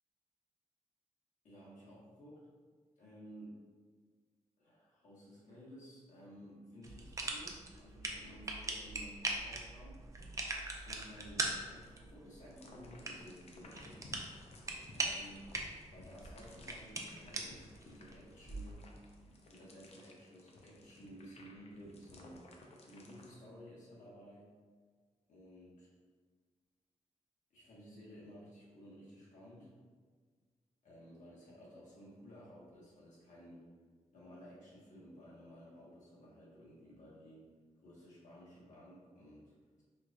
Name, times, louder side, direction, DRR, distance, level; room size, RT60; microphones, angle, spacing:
voice 1, 1.4-2.4 3.0-3.6 4.6-10.0 10.7-13.9 14.9-15.5 15.9-18.9 19.4-22.4 22.8-24.5 25.3-25.9 27.5-29.7 30.8-33.6 34.1-37.5 37.8-39.8, equal, 85° left, -6 dB, 1.2 m, -55 dB
sound 1, 6.8-18.7, right 2 dB, 25° right, 0.4 m, -42 dB
sound 2, 12.5-23.4, left 2 dB, 55° left, 0.5 m, -57 dB
4.5 x 2.4 x 2.6 m, 1.5 s
wide cardioid pair, 115°, 13 cm